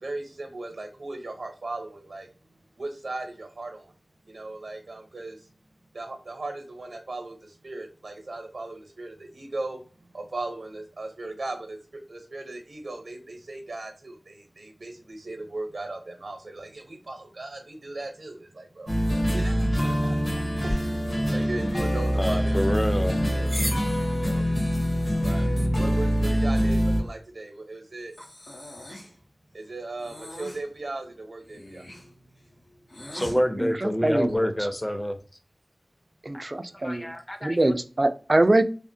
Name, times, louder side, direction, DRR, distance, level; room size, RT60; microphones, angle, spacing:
voice 1, 0.0-2.3 2.8-3.8 4.3-5.4 5.9-7.3 7.6-9.8 10.1-11.8 12.1-18.9 19.3-21.0 21.3-23.5 24.2-24.4 25.2-25.5 25.8-28.1 29.5-31.8 36.9-37.0, right 2 dB, 85° right, 0.8 m, -37 dB
sound 1, 18.9-27.0, equal, 45° left, 1.0 m, -24 dB
sound 2, 20.6-27.1, left 1 dB, 65° left, 1.2 m, -39 dB
voice 2, 22.2-23.2 33.1-35.2 36.3-36.4 36.8-37.6, equal, 20° left, 0.5 m, -27 dB
Breathing, 28.1-29.2 30.0-30.6 31.4-33.4, left 1 dB, 90° left, 1.2 m, -43 dB
voice 3, 33.6-34.5 36.2-37.1 37.4-38.6, right 2 dB, 45° right, 0.3 m, -23 dB
3.2 x 2.1 x 2.6 m
wide cardioid pair, 55°, 0 cm